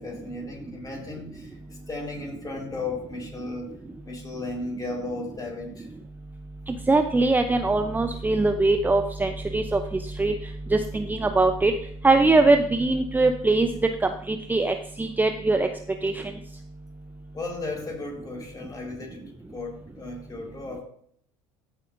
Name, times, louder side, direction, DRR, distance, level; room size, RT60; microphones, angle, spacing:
voice 1, 0.0-1.6 1.9-3.7 4.0-5.9 17.3-20.8, left 2 dB, 25° left, 0 dB, 4.1 m, -35 dB
voice 2, 6.9-9.8 10.2-10.3 10.7-11.7 12.0-13.7 14.0-15.7 16.0-16.1, right 3 dB, 10° right, 6 dB, 0.7 m, -21 dB
14.0 x 7.3 x 2.6 m, 0.64 s
hypercardioid pair, 75°, 16 cm